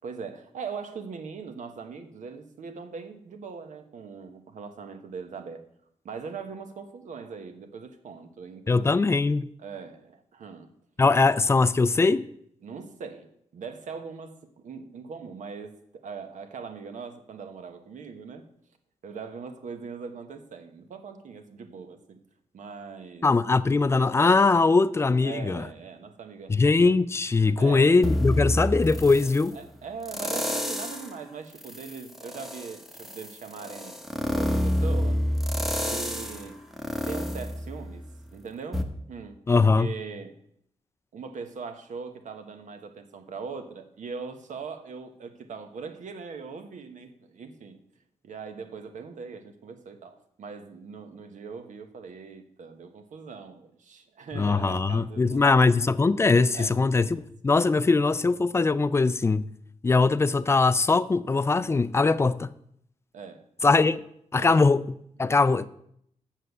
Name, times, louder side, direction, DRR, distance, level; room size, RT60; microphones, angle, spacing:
voice 1, 0.0-5.6 6.0-9.2 9.6-10.7 12.6-14.4 14.6-18.4 19.0-22.2 22.5-23.3 25.2-26.5 27.6-28.0 29.5-35.2 35.8-36.6 37.0-38.0 38.3-40.3 41.1-47.8 48.2-55.7 56.5-57.1 63.1-63.4 64.3-64.6, right 5 dB, 75° right, 1.2 m, -41 dB
voice 2, 8.7-9.5 11.0-12.3 23.2-25.7 26.5-29.6 39.5-39.9 54.3-59.5 59.8-62.5 63.6-64.0 64.3-65.7, left 3 dB, 20° left, 0.4 m, -21 dB
sound 1, 28.0-29.4 30.0-31.1 31.6-38.3 38.7-38.8, equal, ahead, 0.9 m, -28 dB
7.6 x 6.6 x 7.9 m
wide cardioid pair, 140°, 13 cm